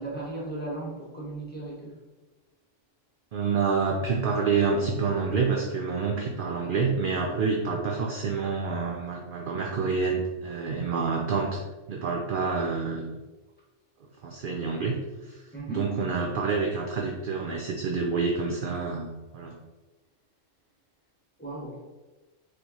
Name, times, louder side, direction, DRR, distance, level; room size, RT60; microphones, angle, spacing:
voice 1, 0.0-2.0 15.5-15.9 21.4-21.8, right 2 dB, 10° left, -6 dB, 1.0 m, -36 dB
voice 2, 3.3-11.6 11.9-13.1 14.2-15.0 15.2-19.6, right 4 dB, 65° right, 0 dB, 0.5 m, -28 dB
4.3 x 3.2 x 2.8 m, 1.2 s
omnidirectional pair, 1.3 m